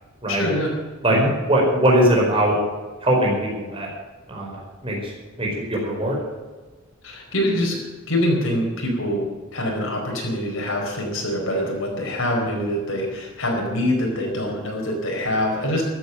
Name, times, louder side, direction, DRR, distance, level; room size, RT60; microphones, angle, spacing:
voice 1, 0.3-0.7 1.1-1.3 7.0-7.8 8.1-9.3 9.5-15.8, left 1 dB, 65° left, 0 dB, 4.6 m, -24 dB
voice 2, 1.5-2.5 3.0-3.9 4.3-5.1 5.4-6.2, right 1 dB, 25° right, -1 dB, 4.9 m, -20 dB
14.0 x 9.4 x 8.9 m, 1.3 s
head